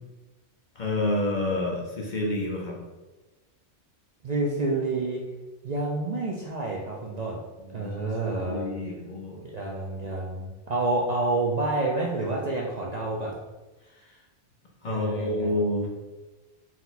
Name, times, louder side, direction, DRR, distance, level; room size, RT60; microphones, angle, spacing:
voice 1, 0.7-2.8 7.7-8.1 8.4-9.5 13.9-14.2 14.8-15.9, left 1 dB, 50° left, -1 dB, 0.7 m, -29 dB
voice 2, 4.2-5.2 5.6-7.4 7.7-8.7 9.4-13.4 14.9-15.5, right 2 dB, 50° right, -2 dB, 0.5 m, -28 dB
4.4 x 2.2 x 4.0 m, 1.1 s
omnidirectional pair, 1.2 m